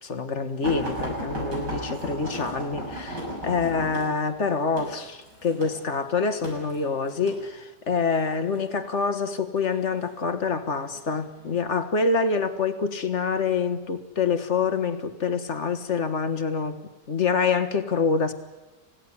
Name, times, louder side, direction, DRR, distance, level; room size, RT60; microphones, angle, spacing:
voice 1, 0.0-16.8 17.1-18.3, left 5 dB, 45° left, 10 dB, 1.6 m, -26 dB
sound 1, 0.6-7.4 8.2-8.6 9.6-10.2 11.0-11.1 11.5-11.6, right 1 dB, 75° right, 7.1 m, -34 dB
27.5 x 17.0 x 9.8 m, 1.1 s
omnidirectional pair, 1.9 m